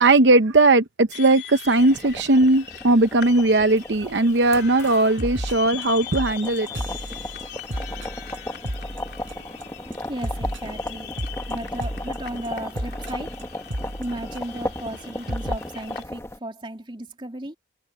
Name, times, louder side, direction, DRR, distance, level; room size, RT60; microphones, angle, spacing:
voice 1, 0.0-6.7, right 2 dB, 70° right, 0.8 m, -18 dB
sound 1, 1.1-16.0, left 10 dB, 55° left, 3.9 m, -41 dB
sound 2, 1.7-16.4, left 1 dB, 15° left, 1.4 m, -36 dB
sound 3, 4.9-5.0 5.2-5.8 6.1-9.6 9.9-14.7 15.0-15.1 15.3-15.6, equal, 85° right, 5.4 m, -33 dB
voice 2, 10.1-11.1 11.5-13.4 14.0-17.6, right 1 dB, 25° right, 3.1 m, -35 dB
head